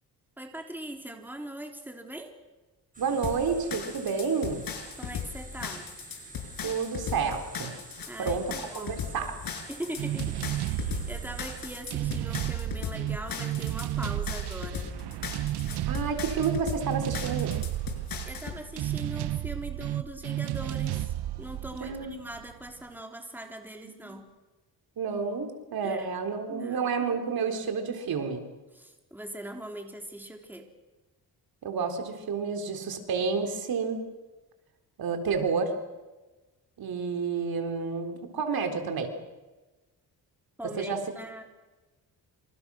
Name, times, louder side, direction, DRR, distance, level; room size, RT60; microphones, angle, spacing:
voice 1, 0.4-2.3 5.0-5.9 8.1-9.0 9.7-14.9 18.2-24.3 25.8-26.1 26.5-26.9 28.7-30.7 40.6-41.4, right 1 dB, 5° right, 3 dB, 3.7 m, -41 dB
sound 1, 2.9-11.8, right 2 dB, 20° right, 6.9 m, -48 dB
voice 2, 3.0-4.6 6.6-7.7 8.2-9.3 15.9-17.5 21.8-22.1 23.8-23.9 25.0-28.4 31.6-34.0 35.0-35.7 36.8-39.1 40.8-41.0, right 5 dB, 65° right, 5 dB, 4.1 m, -30 dB
sound 2, 3.2-18.6, left 7 dB, 65° left, 6.3 m, -37 dB
sound 3, 10.0-22.7, right 14 dB, 90° right, 0.9 m, -33 dB
27.5 x 27.0 x 6.4 m, 1.2 s
cardioid pair, 105°, 38 cm